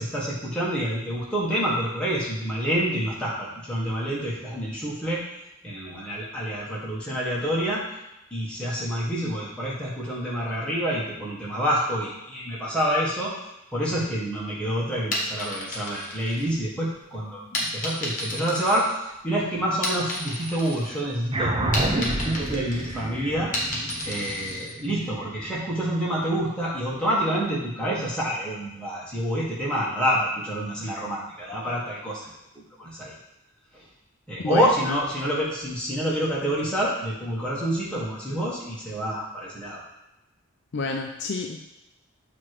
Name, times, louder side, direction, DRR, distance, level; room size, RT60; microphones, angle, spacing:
voice 1, 0.0-5.2 5.6-7.8 8.3-13.3 13.7-23.5 24.0-33.1 33.7-33.8 34.3-39.8, equal, 5° left, -7 dB, 1.5 m, -27 dB
sound 1, 15.0-16.9 17.5-19.3 19.7-21.0 21.3-24.7, left 1 dB, 40° left, 1.3 m, -32 dB
sound 2, 21.3-26.1, right 2 dB, 25° right, 0.6 m, -29 dB
voice 2, 34.4-35.0 40.7-41.6, left 3 dB, 55° left, 2 dB, 0.5 m, -29 dB
7.2 x 3.0 x 4.8 m, 0.91 s
head